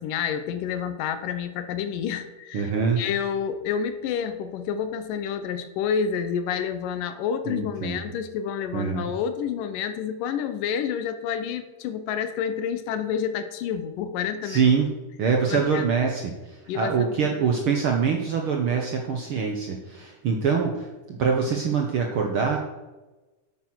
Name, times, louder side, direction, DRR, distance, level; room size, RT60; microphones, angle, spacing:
voice 1, 0.0-2.7 3.0-14.7 15.4-15.8 16.7-17.1, left 7 dB, 85° left, 10 dB, 2.6 m, -29 dB
voice 2, 2.5-3.0 7.5-8.0 8.7-9.1 14.4-14.9 15.2-22.6, right 6 dB, 65° right, 2 dB, 1.4 m, -24 dB
9.3 x 9.0 x 6.3 m, 1.1 s
omnidirectional pair, 3.7 m